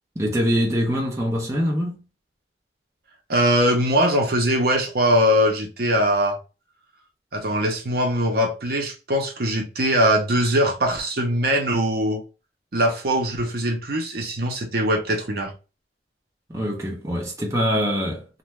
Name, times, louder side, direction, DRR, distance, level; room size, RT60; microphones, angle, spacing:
voice 1, 0.2-2.0 16.5-18.3, equal, 15° right, 0.6 m, -24 dB
voice 2, 3.3-6.4 7.3-12.2 12.7-15.5, equal, 60° right, 0.7 m, -21 dB
2.5 x 2.2 x 3.1 m
head